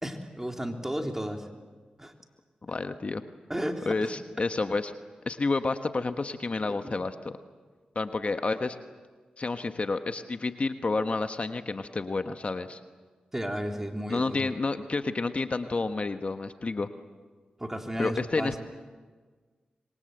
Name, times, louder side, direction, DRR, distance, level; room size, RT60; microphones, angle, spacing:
voice 1, 0.0-1.5 2.0-2.1 3.5-4.1 6.7-7.0 13.3-14.5 17.6-18.6, equal, 15° right, 3 dB, 3.5 m, -33 dB
voice 2, 2.6-3.3 3.9-4.9 5.3-7.3 7.9-8.8 9.4-12.8 14.1-16.9 18.0-18.6, left 3 dB, 50° left, 8 dB, 1.3 m, -30 dB
26.5 x 23.0 x 7.9 m, 1.4 s
cardioid pair, 45°, 3 cm